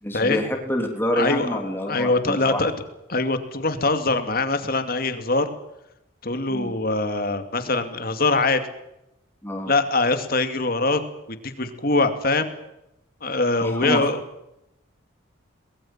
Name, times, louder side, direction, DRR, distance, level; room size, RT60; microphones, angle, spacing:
voice 1, 0.0-2.6 6.5-6.7 9.4-9.7 13.6-14.1, equal, 10° left, 2 dB, 3.4 m, -27 dB
voice 2, 1.1-2.7 3.1-5.5 6.2-8.6 9.7-11.0 11.4-12.5 13.2-14.2, left 3 dB, 45° left, 8 dB, 2.5 m, -23 dB
23.5 x 21.0 x 7.5 m, 0.86 s
head